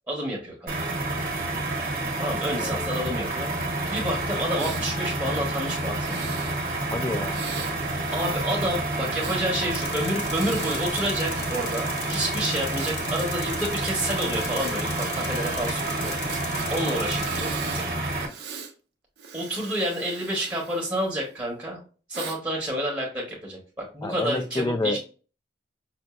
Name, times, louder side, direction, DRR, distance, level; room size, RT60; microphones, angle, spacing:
voice 1, 0.1-0.9 2.2-3.5 3.9-6.2 8.1-16.1 16.7-17.5 17.7-17.9 19.3-21.8 22.1-23.6 23.9-25.0, right 1 dB, 20° right, -3 dB, 1.1 m, -29 dB
sound 1, 0.7-18.3, right 2 dB, 50° right, 1.1 m, -29 dB
voice 2, 2.6-2.9 6.9-7.4 24.0-25.0, left 2 dB, 20° left, 8 dB, 0.3 m, -28 dB
Breathing, 4.6-4.9 5.9-6.6 7.3-9.4 10.2-11.8 12.8-15.1 15.4-15.5 16.0-16.7 17.1-17.9 18.2-18.7 19.2-21.3 22.1-22.4, right 6 dB, 75° right, 0.7 m, -40 dB
Tools, 9.7-17.4, left 6 dB, 70° left, 0.7 m, -39 dB
5.8 x 2.5 x 2.4 m, 0.37 s
head